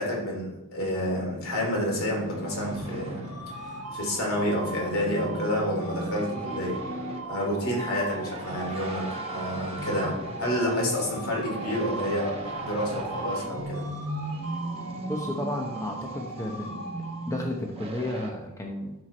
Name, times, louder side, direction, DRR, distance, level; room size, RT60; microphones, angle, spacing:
voice 1, 0.0-6.8 7.3-12.3 12.6-13.9, equal, 70° left, -1 dB, 3.0 m, -29 dB
sound 1, 0.9-18.3, right 1 dB, 25° right, 1.1 m, -38 dB
sound 2, 2.5-17.8, right 2 dB, 75° right, 2.2 m, -39 dB
voice 2, 15.1-16.8 17.3-18.9, left 1 dB, 15° left, 1 dB, 0.8 m, -32 dB
12.5 x 4.7 x 4.4 m, 0.96 s
head